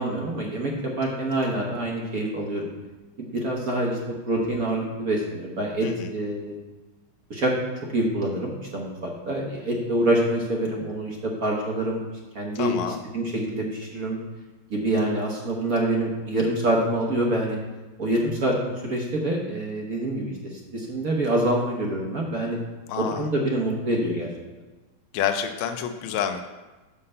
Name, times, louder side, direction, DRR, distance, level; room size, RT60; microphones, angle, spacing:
voice 1, 0.0-2.6 3.2-6.5 7.3-7.5 7.9-12.0 12.3-14.2 14.7-17.6 18.0-18.5 18.8-22.6 23.0-24.3, right 1 dB, 50° right, -1 dB, 1.3 m, -26 dB
voice 2, 12.5-13.0 22.9-23.3 25.1-26.4, left 8 dB, 80° left, 7 dB, 1.5 m, -28 dB
5.6 x 5.5 x 6.5 m, 1.2 s
omnidirectional pair, 2.3 m